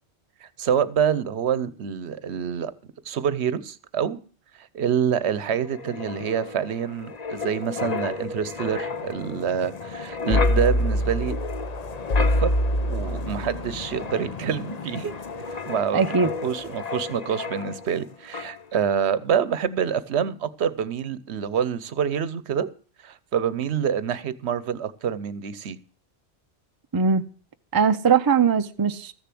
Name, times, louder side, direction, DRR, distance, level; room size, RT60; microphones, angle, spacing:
voice 1, 0.4-2.7 3.1-4.2 4.6-11.4 12.2-12.5 12.9-15.1 15.5-22.7 23.0-25.8, right 8 dB, 75° right, 1.0 m, -26 dB
Wind, 5.6-18.0 18.3-18.6, left 2 dB, 40° left, 0.8 m, -28 dB
voice 2, 15.9-16.3 26.9-27.2 27.7-29.1, right 6 dB, 25° right, 0.5 m, -20 dB
14.0 x 6.9 x 7.5 m
omnidirectional pair, 1.1 m